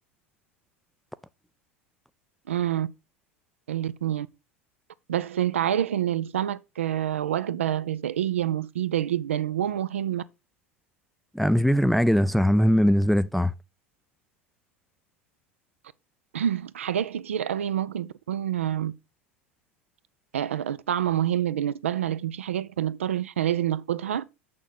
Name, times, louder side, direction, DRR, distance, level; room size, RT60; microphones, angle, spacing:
voice 1, 2.5-2.9 3.7-4.3 5.1-10.2 16.3-18.9 20.3-24.2, right 10 dB, 70° right, 0.5 m, -27 dB
voice 2, 11.3-13.5, equal, ahead, 0.4 m, -21 dB
7.0 x 6.4 x 4.1 m
figure-of-eight pair, 75°, 7 cm